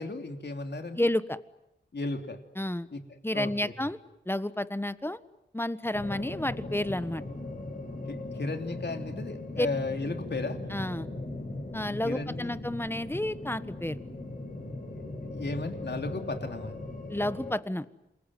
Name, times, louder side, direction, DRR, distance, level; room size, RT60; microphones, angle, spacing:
voice 1, 0.0-1.0 1.9-2.4 2.9-3.0 3.3-3.7 8.1-10.6 12.0-12.6 15.3-16.8, left 3 dB, 65° left, 5 dB, 3.2 m, -35 dB
voice 2, 1.0-1.4 2.5-2.9 3.2-4.0 4.2-5.2 5.5-7.2 9.6-9.7 10.7-11.1 11.7-14.0 17.1-17.9, left 1 dB, 10° left, 14 dB, 1.4 m, -30 dB
sound 1, 5.9-17.6, left 2 dB, 50° left, 6.8 m, -39 dB
28.0 x 22.0 x 9.4 m, 0.86 s
cardioid pair, 50°, 19 cm